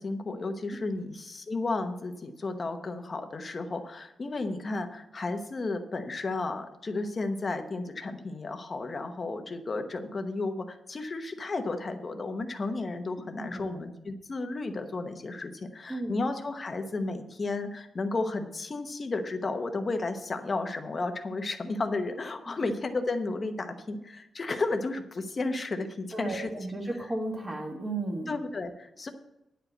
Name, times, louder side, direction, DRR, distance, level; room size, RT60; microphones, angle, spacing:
voice 1, 0.0-26.5 28.3-29.1, left 3 dB, 30° left, 6 dB, 0.9 m, -33 dB
voice 2, 13.3-13.7 15.9-16.2 22.5-22.6 26.1-28.3, right 2 dB, 15° right, 2 dB, 1.6 m, -34 dB
10.5 x 5.0 x 7.9 m, 0.89 s
wide cardioid pair, 175°, 0 cm